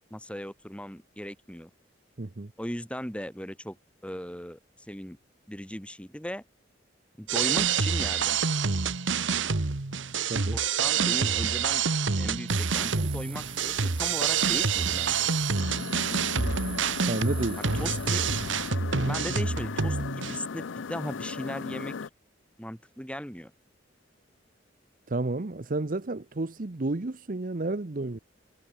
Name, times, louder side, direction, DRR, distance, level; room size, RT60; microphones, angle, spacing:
voice 1, 0.1-1.7 2.6-3.8 4.0-4.6 4.9-5.2 5.5-6.4 7.2-8.4 10.5-11.8 12.1-15.3 17.7-18.2 19.0-22.0 22.6-23.5, equal, 5° left, 3.2 m, -37 dB
voice 2, 2.2-2.5 10.3-10.6 17.1-17.6 25.1-28.2, right 2 dB, 45° right, 0.8 m, -31 dB
sound 1, 7.3-20.4, right 6 dB, 85° right, 1.3 m, -27 dB
sound 2, 12.5-18.7, right 7 dB, 30° right, 3.2 m, -43 dB
sound 3, 15.5-22.1, left 5 dB, 85° left, 0.6 m, -37 dB
head